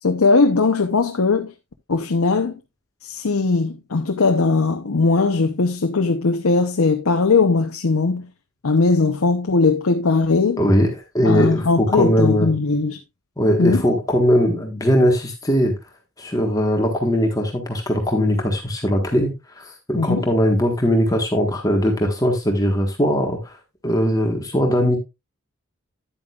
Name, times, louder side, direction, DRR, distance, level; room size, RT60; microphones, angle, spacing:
voice 1, 0.0-1.5 1.9-2.6 3.0-8.2 8.6-10.6 11.2-13.0 13.6-13.9 20.0-20.2, left 3 dB, 80° left, 0.8 m, -19 dB
voice 2, 10.6-12.5 13.4-15.7 16.2-19.3 19.6-23.6 23.8-25.0, equal, 15° left, 1.4 m, -20 dB
10.5 x 8.8 x 2.4 m
head